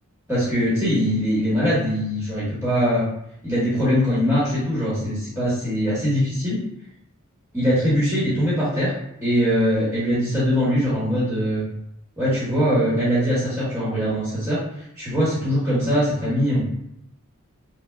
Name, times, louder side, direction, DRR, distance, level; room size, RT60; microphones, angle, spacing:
voice 1, 0.3-3.0 3.4-6.6 7.5-8.9 9.2-11.6 12.2-14.6 15.0-16.6, equal, 10° right, -10 dB, 1.4 m, -22 dB
5.6 x 2.4 x 2.3 m, 0.78 s
head